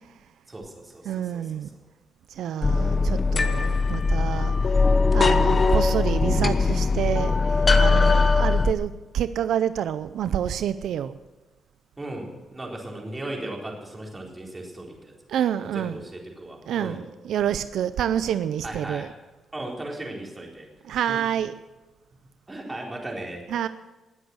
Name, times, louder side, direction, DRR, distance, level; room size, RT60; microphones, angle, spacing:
voice 1, 0.5-1.5 12.0-15.1 15.6-17.0 18.6-19.1 19.5-20.7 21.1-21.2 22.5-23.4, right 1 dB, 20° right, -1 dB, 4.1 m, -36 dB
voice 2, 1.1-1.7 2.3-4.5 5.1-11.1 15.3-16.0 16.7-19.1 20.9-21.5 23.5-23.7, right 10 dB, 80° right, 13 dB, 0.5 m, -28 dB
sound 1, 2.6-8.7, left 4 dB, 35° left, 1.1 m, -20 dB
20.0 x 8.0 x 7.8 m, 1.1 s
cardioid pair, 105°, 0 cm